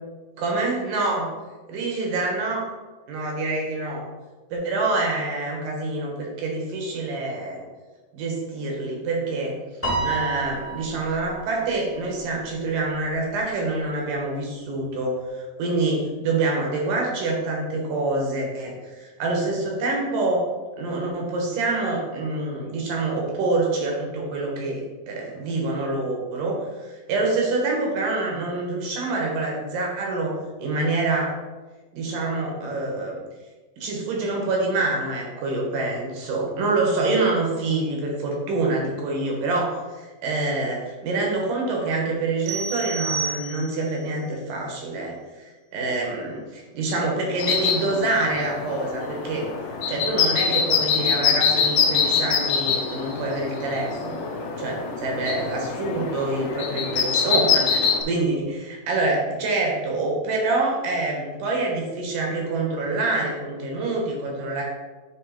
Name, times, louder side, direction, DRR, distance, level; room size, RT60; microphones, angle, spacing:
voice 1, 0.4-1.3 1.7-2.6 3.1-4.1 4.5-7.6 8.1-9.5 10.0-20.5 20.8-24.8 25.1-31.3 31.9-33.2 33.8-49.5 49.9-54.3 54.6-64.6, right 2 dB, 75° right, -1 dB, 2.9 m, -26 dB
Piano, 9.8-12.3, right 3 dB, 10° left, 1.0 m, -30 dB
sound 1, 42.5-44.0, right 4 dB, 90° right, 2.4 m, -30 dB
sound 2, 47.4-58.0, left 6 dB, 75° left, 2.0 m, -24 dB
9.3 x 3.2 x 4.4 m, 1.3 s
omnidirectional pair, 3.9 m